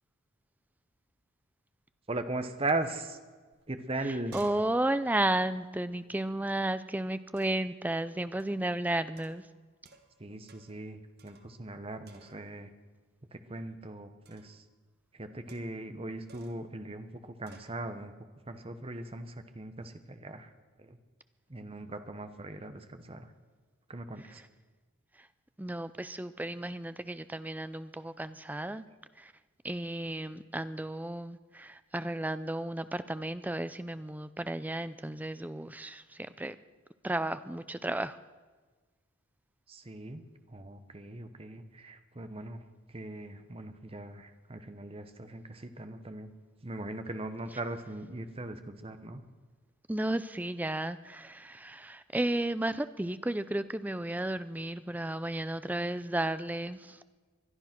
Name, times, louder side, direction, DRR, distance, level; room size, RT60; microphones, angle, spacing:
voice 1, 2.1-3.2 3.7-4.4 10.2-12.7 13.3-14.6 15.1-18.1 18.5-20.5 20.8-21.0 21.5-23.3 23.9-24.4 39.7-40.2 40.5-46.3 46.6-49.2, right 2 dB, 25° right, 9 dB, 0.9 m, -39 dB
sound 1, 3.5-3.6 3.9-6.6 7.4-7.7 8.4-8.7 9.2-10.2 10.5-10.8 11.2-11.8 12.0-12.6 14.2-14.6 15.5-15.9 16.3-16.7 17.5-17.8, right 4 dB, 45° right, 1.4 m, -58 dB
voice 2, 4.0-9.5 25.2-25.3 25.6-28.8 29.2-29.3 29.6-36.6 37.0-38.2 49.9-57.0, right 1 dB, 5° right, 13 dB, 0.4 m, -33 dB
21.0 x 11.5 x 6.0 m, 1.4 s
head